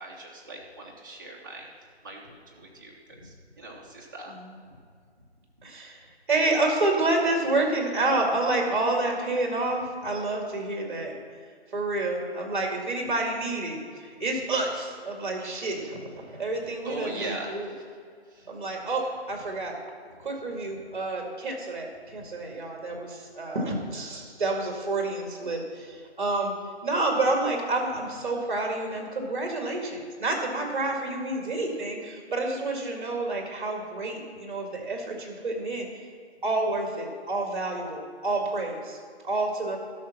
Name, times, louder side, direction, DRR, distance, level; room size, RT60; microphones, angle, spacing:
voice 1, 0.0-1.7 2.0-4.3 4.6-4.7 16.8-17.8 18.3-18.5 22.1-22.2 23.1-23.3, right 2 dB, 20° right, -3 dB, 0.9 m, -40 dB
voice 2, 5.6-6.0 6.3-11.1 11.7-17.7 18.5-19.8 20.2-26.5 26.8-35.9 36.4-39.0 39.2-39.8, right 2 dB, 45° right, 1 dB, 2.2 m, -29 dB
12.0 x 6.4 x 5.7 m, 2.1 s
hypercardioid pair, 175°, 33 cm